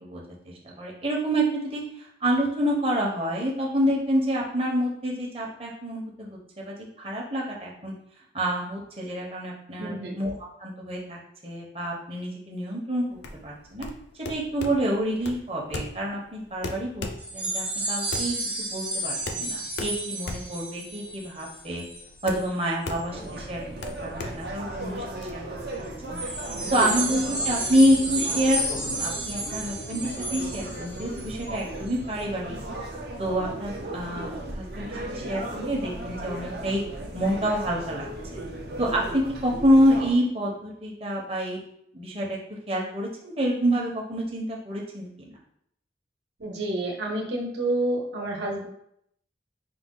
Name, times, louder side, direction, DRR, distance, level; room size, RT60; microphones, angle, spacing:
voice 1, 0.0-7.9 8.3-10.3 10.6-13.9 14.3-21.8 22.2-23.6 24.0-25.4 25.8-26.2 26.7-32.6 33.2-36.8 37.1-38.4 38.8-41.6 41.9-42.4 42.7-45.3, equal, 30° right, -2 dB, 0.9 m, -27 dB
voice 2, 9.8-10.1 26.6-26.9 46.4-48.6, right 1 dB, 75° right, -1 dB, 1.1 m, -29 dB
sound 1, 13.1-25.3, left 2 dB, 70° left, 0.5 m, -38 dB
sound 2, 17.2-22.6 22.9-23.2 23.8-23.9 26.2-31.5 31.9-32.0, right 1 dB, 5° right, 0.5 m, -31 dB
sound 3, 23.1-40.1, right 1 dB, 60° right, 0.8 m, -36 dB
4.7 x 2.3 x 3.8 m, 0.72 s
head